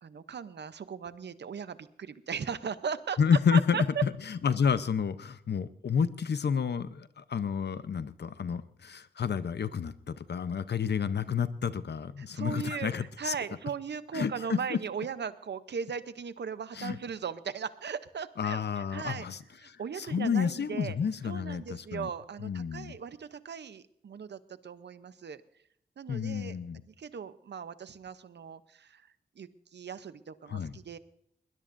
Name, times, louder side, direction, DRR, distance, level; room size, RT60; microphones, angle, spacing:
voice 1, 0.0-3.8 12.2-19.3 19.6-21.0 21.2-25.4 26.0-26.6 26.9-29.0 29.4-31.0, right 6 dB, 90° right, 13 dB, 0.7 m, -38 dB
voice 2, 3.2-13.4 14.1-14.8 16.7-17.0 18.4-19.4 19.6-22.1 22.4-22.9 26.1-26.8 30.5-30.7, left 6 dB, 80° left, 13 dB, 0.7 m, -30 dB
21.5 x 20.0 x 2.6 m, 0.71 s
wide cardioid pair, 90°, 17 cm